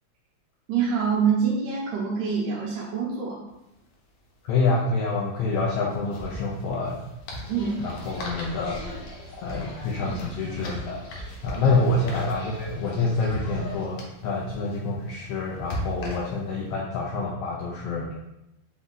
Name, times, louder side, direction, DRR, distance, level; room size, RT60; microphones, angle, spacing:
voice 1, 0.7-3.4 7.5-7.9 8.2-8.3 11.5-11.6, right 6 dB, 85° right, -5 dB, 2.1 m, -25 dB
sound 1, 3.5-3.6 3.8-3.9 5.4-16.6, left 1 dB, 70° left, 2.0 m, -39 dB
voice 2, 4.4-7.0 7.8-9.0 9.3-11.0 11.4-18.1, left 3 dB, 90° left, -2 dB, 1.3 m, -27 dB
sound 2, 7.4-13.9, left 1 dB, 55° left, 1.2 m, -42 dB
5.2 x 2.4 x 3.8 m, 0.88 s
omnidirectional pair, 3.3 m